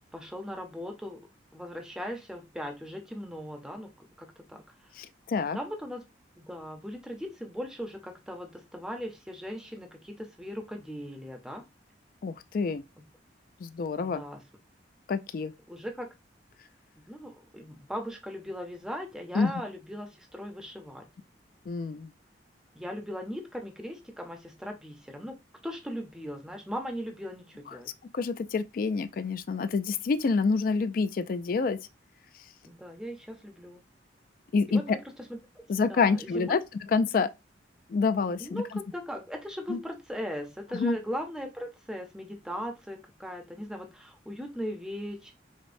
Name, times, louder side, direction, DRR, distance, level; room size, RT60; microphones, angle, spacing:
voice 1, 0.1-1.2 1.5-3.9 4.2-4.9 5.5-6.0 6.4-11.6 13.0-13.1 14.0-14.4 15.7-16.1 17.0-21.1 22.8-25.4 25.6-27.9 32.6-33.8 34.7-35.6 35.9-36.6 38.4-45.3, equal, 5° right, 0.5 m, -38 dB
voice 2, 5.0-5.6 12.2-12.8 13.6-14.2 15.1-15.5 19.3-19.5 21.7-22.1 28.1-31.8 34.5-34.8 35.7-36.6 36.9-37.3 37.9-38.6 39.7-39.8 40.7-41.0, left 4 dB, 50° left, 0.3 m, -27 dB
5.0 x 2.1 x 2.5 m
head